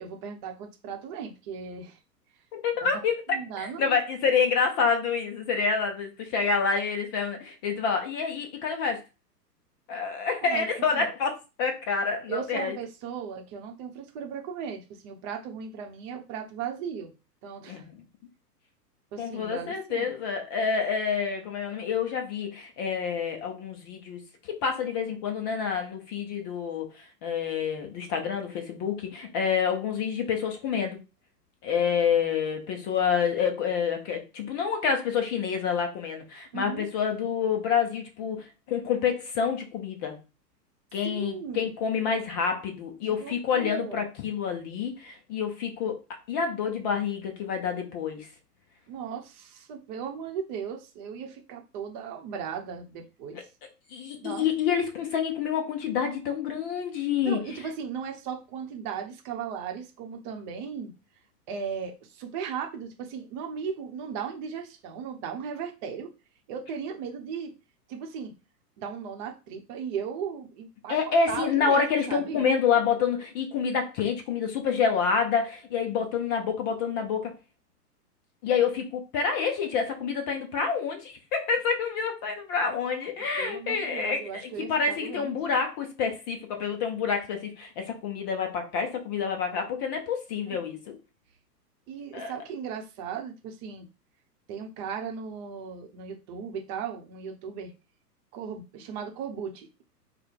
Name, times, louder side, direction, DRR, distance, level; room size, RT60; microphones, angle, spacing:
voice 1, 0.0-2.0 2.9-3.0 3.3-3.9 10.4-10.7 10.9-11.1 12.3-17.1 17.4-17.9 19.1-20.1 36.5-36.9 41.0-41.7 43.2-44.1 48.9-53.5 54.1-54.5 57.3-60.9 61.5-66.1 66.5-67.5 67.9-68.3 68.8-72.4 82.8-83.0 83.4-85.3 90.5-90.6 91.9-93.9 94.5-97.7 98.3-99.8, right 7 dB, 30° right, 0.9 m, -37 dB
voice 2, 2.5-3.2 3.6-9.0 9.9-12.7 17.7-18.0 19.2-31.0 31.6-40.2 40.9-46.0 46.3-48.3 53.9-57.4 70.9-77.3 78.4-90.8 92.1-92.3, left 6 dB, 15° left, 0.4 m, -28 dB
4.8 x 2.3 x 4.4 m
figure-of-eight pair, 110°, 48 cm